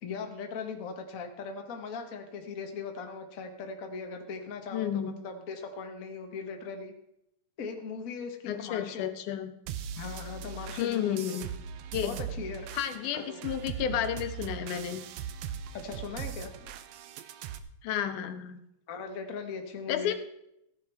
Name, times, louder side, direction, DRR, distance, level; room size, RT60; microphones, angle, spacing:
voice 1, 0.0-6.9 7.6-9.0 10.0-11.4 12.0-12.7 13.1-13.4 15.7-16.7 18.9-20.1, left 5 dB, 55° left, 4 dB, 0.9 m, -39 dB
voice 2, 4.7-5.2 8.5-9.5 10.8-11.5 11.9-12.2 12.7-15.0 17.8-18.6 19.9-20.1, left 10 dB, 85° left, 9 dB, 2.4 m, -32 dB
sound 1, 9.7-17.6, right 8 dB, 75° right, 1.7 m, -40 dB
15.0 x 10.5 x 3.5 m, 0.81 s
omnidirectional pair, 3.5 m